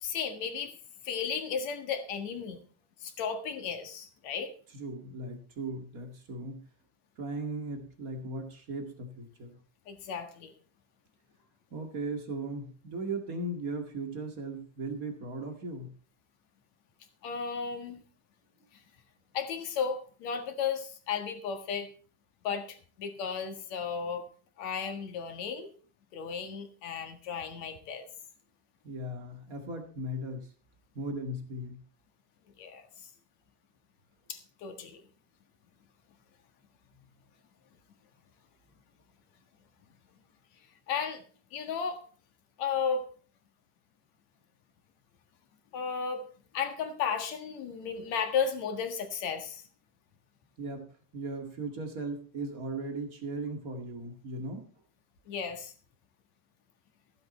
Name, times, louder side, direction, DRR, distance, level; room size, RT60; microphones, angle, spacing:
voice 1, 0.0-0.8 1.0-2.6 3.0-4.5 9.9-10.5 17.2-18.0 18.7-18.8 19.3-21.9 22.4-24.3 24.6-25.7 26.1-28.1 32.6-33.1 34.3-35.0 40.9-41.2 41.5-42.0 42.6-43.1 45.7-46.3 46.5-49.6 55.3-55.7, left 6 dB, 55° left, 6 dB, 2.1 m, -34 dB
voice 2, 4.7-6.6 7.2-9.6 11.7-15.9 28.8-30.5 30.9-31.8 50.6-50.8 51.1-54.6, right 2 dB, 60° right, 4 dB, 0.9 m, -37 dB
15.0 x 10.5 x 4.3 m, 0.40 s
omnidirectional pair, 5.2 m